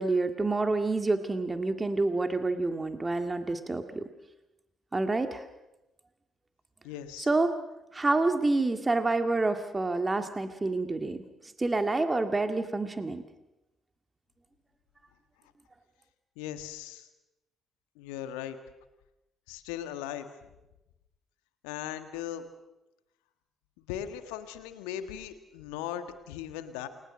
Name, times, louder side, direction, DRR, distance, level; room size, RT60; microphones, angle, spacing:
voice 1, 0.0-4.1 4.9-5.5 7.3-7.6 7.9-11.2 11.6-13.2, right 2 dB, 25° right, 7 dB, 1.9 m, -28 dB
voice 2, 6.8-7.3 16.3-17.1 17.9-18.6 19.5-20.3 21.6-22.5 23.8-26.9, left 11 dB, 75° left, 9 dB, 1.6 m, -38 dB
29.0 x 21.0 x 6.4 m, 0.95 s
figure-of-eight pair, 45°, 0 cm